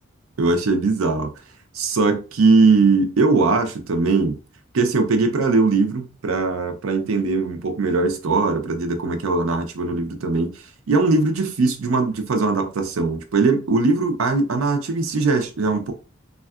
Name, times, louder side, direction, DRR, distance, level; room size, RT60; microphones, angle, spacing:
voice 1, 0.4-1.3 1.7-4.4 4.7-10.5 10.9-15.9, right 3 dB, 85° right, 0.5 m, -20 dB
3.5 x 2.2 x 2.3 m
head